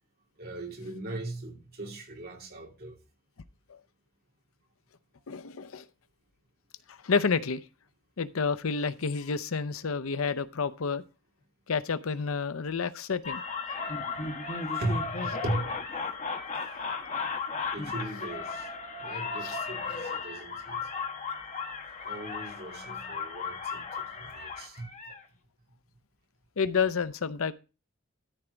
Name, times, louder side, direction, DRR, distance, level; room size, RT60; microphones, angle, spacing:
voice 1, 0.4-3.0 14.7-15.8 17.7-18.7 19.0-20.9 22.0-25.1, right 2 dB, 50° right, 2.7 m, -38 dB
voice 2, 5.3-5.8 6.9-7.6 8.2-11.0 11.7-13.4 19.4-19.5 26.6-27.5, left 5 dB, 85° left, 0.7 m, -29 dB
sound 1, 13.2-25.2, left 4 dB, 35° left, 1.4 m, -35 dB
13.5 x 4.5 x 5.0 m
head